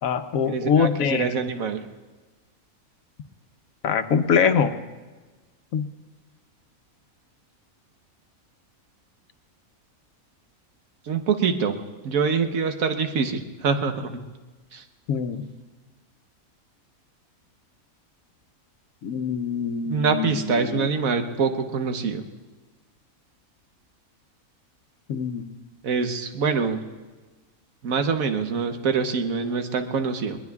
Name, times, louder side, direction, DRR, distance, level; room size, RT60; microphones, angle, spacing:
voice 1, 0.0-1.4 3.8-4.7 5.7-5.9 15.1-15.4 19.0-20.9 25.1-25.5, left 6 dB, 70° left, 9 dB, 1.2 m, -24 dB
voice 2, 0.5-1.8 11.1-11.7 12.0-14.3 14.7-14.8 19.9-22.2 25.8-26.8 27.8-30.4, right 5 dB, 70° right, 6 dB, 1.4 m, -25 dB
21.5 x 21.5 x 2.4 m, 1.3 s
omnidirectional pair, 1.5 m